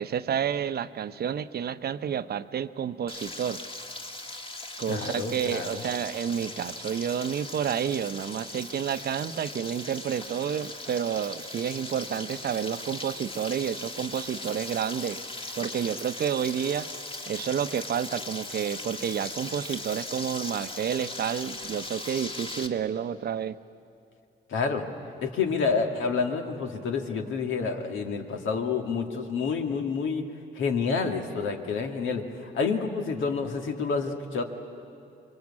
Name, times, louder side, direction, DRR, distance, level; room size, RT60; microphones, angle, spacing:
voice 1, 0.0-3.6 4.8-15.2 15.5-16.9 17.3-23.6, right 8 dB, 55° right, 12 dB, 0.8 m, -30 dB
Frying (food), 3.1-22.7, left 2 dB, 25° left, 1.8 m, -39 dB
voice 2, 4.9-5.8 24.5-24.8 25.2-30.2 30.6-34.4, left 5 dB, 80° left, 4 dB, 2.2 m, -28 dB
25.5 x 22.5 x 8.5 m, 2.7 s
cardioid pair, 90°, 20 cm